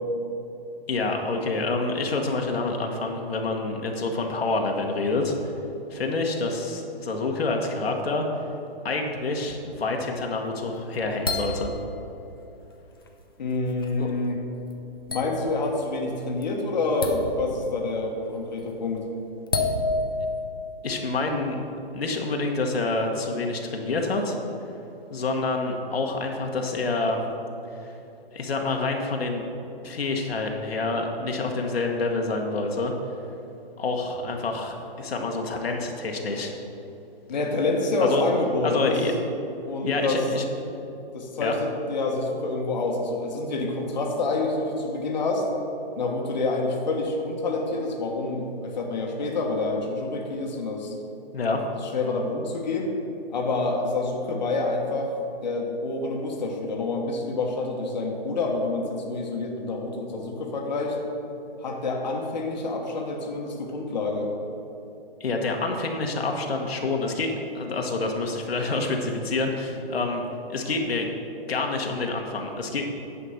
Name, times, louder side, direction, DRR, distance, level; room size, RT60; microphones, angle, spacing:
voice 1, 0.9-5.3 5.9-8.3 8.8-11.7 14.0-14.1 20.8-21.6 21.9-24.4 25.1-27.2 28.3-29.5 29.8-32.9 33.8-36.6 38.0-38.2 38.6-39.1 39.8-40.5 41.4-41.5 51.3-51.6 65.2-70.2 70.5-71.1 71.5-72.9, left 3 dB, 80° left, 2 dB, 1.4 m, -27 dB
sound 1, 10.6-12.3 12.9-13.1 13.5-14.2 14.7-14.8 15.1-15.8 16.0-16.4 17.0-17.8 18.4-18.7 19.5-20.8, left 2 dB, 25° left, 0.4 m, -29 dB
voice 2, 13.4-14.4 15.1-19.1 37.3-39.0 39.7-40.2 41.1-45.5 46.0-50.9 51.9-52.9 53.3-55.1 55.4-61.0 61.6-64.3, left 3 dB, 45° left, 0 dB, 1.3 m, -27 dB
9.8 x 5.1 x 6.5 m, 2.9 s
hypercardioid pair, 175°, 30 cm